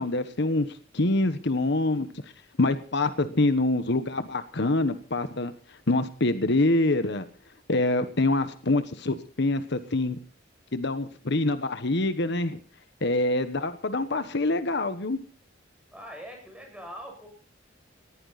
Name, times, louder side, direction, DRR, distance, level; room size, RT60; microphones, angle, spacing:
voice 1, 0.0-2.1 2.6-7.2 7.7-10.2 10.7-12.6 13.0-15.2, left 2 dB, 65° left, 11 dB, 1.2 m, -25 dB
voice 2, 15.9-17.3, equal, 5° right, 2 dB, 7.9 m, -42 dB
20.0 x 15.5 x 4.1 m, 0.40 s
head